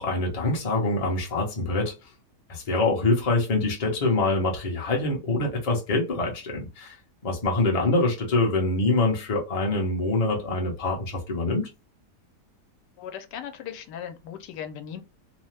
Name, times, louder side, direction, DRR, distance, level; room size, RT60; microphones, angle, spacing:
voice 1, 0.0-1.9 2.5-6.9 7.2-11.7, left 2 dB, 35° left, 0.6 m, -25 dB
voice 2, 13.0-15.0, left 9 dB, 85° left, 1.2 m, -38 dB
2.8 x 2.0 x 3.1 m
omnidirectional pair, 1.8 m